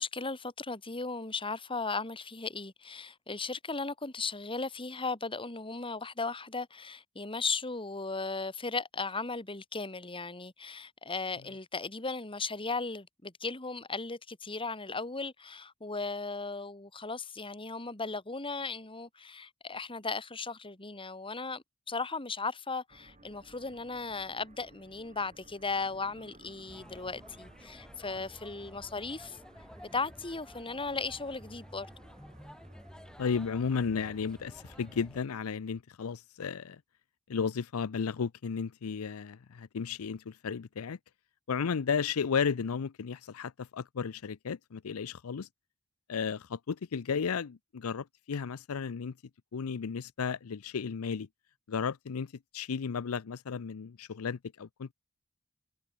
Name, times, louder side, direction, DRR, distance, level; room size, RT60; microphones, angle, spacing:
voice 1, 0.0-29.4 29.9-31.9, left 4 dB, 25° left, 2.7 m, -36 dB
sound 1, 22.9-35.0, right 2 dB, 35° right, 4.9 m, -59 dB
sound 2, 26.7-35.2, equal, 5° left, 2.7 m, -52 dB
voice 2, 33.2-36.8 37.3-41.0 41.5-45.5 46.1-49.1 49.5-51.3 51.7-54.9, left 6 dB, 75° left, 0.5 m, -34 dB
head